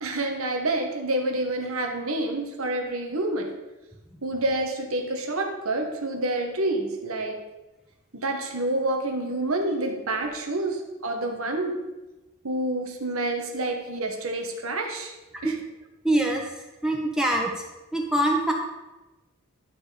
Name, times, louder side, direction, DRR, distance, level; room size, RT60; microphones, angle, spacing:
voice 1, 0.0-3.5 4.2-7.4 8.1-11.8 12.4-15.1 15.4-15.5, right 2 dB, 80° right, 3 dB, 1.5 m, -28 dB
voice 2, 16.0-16.4 16.8-17.5 17.9-18.5, right 1 dB, 5° right, -1 dB, 1.2 m, -23 dB
11.5 x 6.2 x 5.1 m, 1.1 s
head